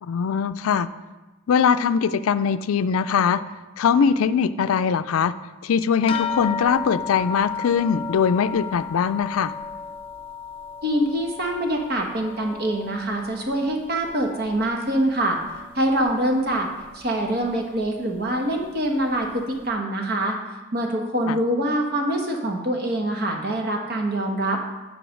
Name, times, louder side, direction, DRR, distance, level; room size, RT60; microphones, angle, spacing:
voice 1, 0.0-0.9 1.5-3.4 3.8-5.3 5.6-9.5 21.3-21.4, left 6 dB, 85° left, 13 dB, 0.4 m, -21 dB
sound 1, 6.1-14.9 15.2-16.1 16.8-16.9 17.4-17.5, left 6 dB, 25° left, 0.5 m, -34 dB
voice 2, 10.8-15.4 15.7-16.7 16.9-20.4 20.7-24.6, right 1 dB, 50° right, 2 dB, 1.2 m, -24 dB
9.9 x 3.9 x 6.4 m, 1.2 s
head